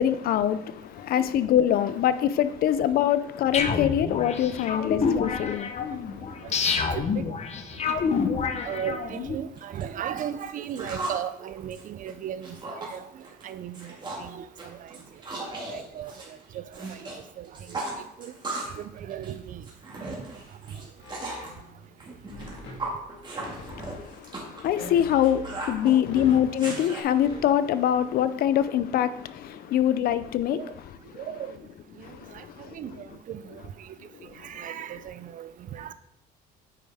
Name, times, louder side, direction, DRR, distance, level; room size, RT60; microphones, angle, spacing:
voice 1, 0.0-6.8 7.8-7.9 23.4-30.7 32.0-32.8, left 10 dB, 60° left, 0.5 m, -25 dB
sound 1, 3.5-9.3, left 5 dB, 40° left, 0.9 m, -28 dB
voice 2, 6.9-7.3 7.9-8.2 8.6-13.1 13.4-15.0 15.4-17.0 17.4-17.8 18.2-18.3 18.7-19.6 26.1-26.3 30.5-30.7 31.2-31.6 32.0-32.1 32.3-32.4 32.7-33.9 34.4-35.9, right 9 dB, 50° right, 0.5 m, -37 dB
sound 2, 9.1-9.2 9.6-11.2 11.6-13.0 13.2-13.5 13.7-14.3 14.6-17.2 17.4-18.8 19.1-21.5 22.0-27.0, right 2 dB, 25° right, 2.1 m, -37 dB
sound 3, 21.0-21.9 22.2-24.1 24.7-26.6 27.1-27.4, equal, 85° left, 2.3 m, -43 dB
9.2 x 5.3 x 3.5 m
cardioid pair, 110°, 17 cm